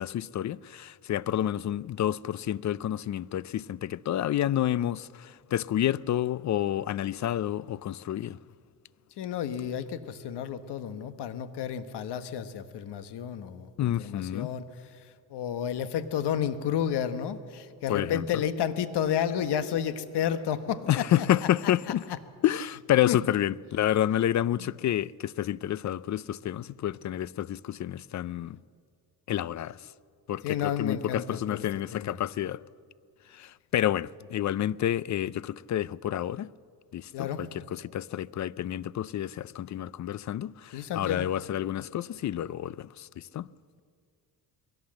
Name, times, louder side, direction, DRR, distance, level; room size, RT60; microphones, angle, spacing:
voice 1, 0.0-8.4 13.8-14.5 17.9-18.2 20.9-22.0 22.4-28.6 29.3-29.8 30.3-32.6 33.3-36.5 36.9-43.5, left 12 dB, 45° left, 0.5 m, -29 dB
voice 2, 9.2-21.7 23.1-23.3 24.5-24.7 30.4-31.6 31.9-32.2 37.1-37.4 40.7-41.3, left 9 dB, 75° left, 1.3 m, -31 dB
22.0 x 17.5 x 7.6 m
cardioid pair, 100°, 42 cm